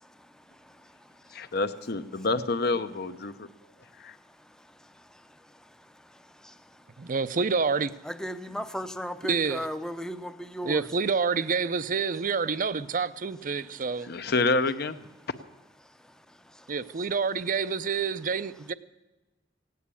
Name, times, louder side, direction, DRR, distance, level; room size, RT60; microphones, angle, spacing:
voice 1, 1.3-3.5 4.0-4.1 14.1-15.0, left 3 dB, 55° left, 0.8 m, -27 dB
voice 2, 7.1-7.9 9.2-9.7 10.6-14.1 16.7-18.7, right 5 dB, 45° right, 0.5 m, -28 dB
voice 3, 8.1-10.9 16.5-16.7, equal, 5° left, 0.6 m, -35 dB
16.5 x 9.4 x 8.4 m
head